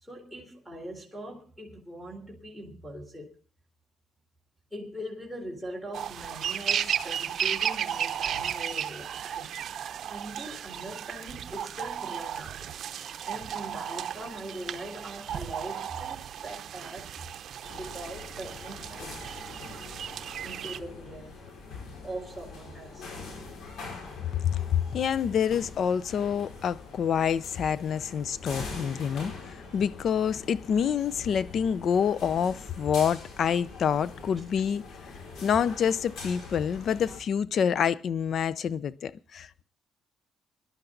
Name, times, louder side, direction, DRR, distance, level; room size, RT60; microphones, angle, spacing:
voice 1, 0.0-3.4 4.7-12.7 13.2-17.2 17.7-19.3 20.4-21.4 22.0-23.5 34.4-34.5, right 1 dB, ahead, 4.0 m, -42 dB
sound 1, 5.9-20.8, right 9 dB, 65° right, 0.7 m, -34 dB
sound 2, 17.6-37.2, left 3 dB, 80° left, 5.3 m, -44 dB
voice 2, 24.4-34.8 35.4-39.6, left 8 dB, 60° left, 0.7 m, -27 dB
20.5 x 11.5 x 3.9 m
cardioid pair, 90°, 0 cm